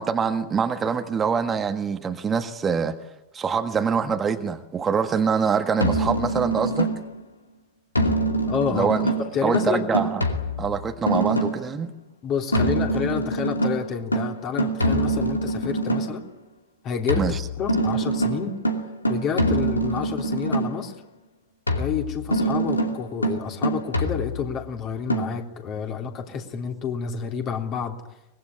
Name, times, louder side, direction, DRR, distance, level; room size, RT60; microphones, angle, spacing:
voice 1, 0.0-3.0 3.3-6.9 8.7-9.1 9.4-10.2 10.6-11.9 17.2-17.4, right 6 dB, 20° right, 7 dB, 1.5 m, -24 dB
sound 1, 5.8-7.2 7.9-11.7 12.5-16.2 17.1-20.9 21.7-24.6 25.1-25.3, right 1 dB, 80° left, 2.6 m, -25 dB
voice 2, 8.5-9.0 9.3-9.9 12.2-16.3 16.8-18.6 19.1-20.9 21.7-28.0, left 7 dB, 35° left, 3 dB, 3.5 m, -29 dB
24.0 x 21.0 x 9.9 m, 0.92 s
figure-of-eight pair, 90°, 0 cm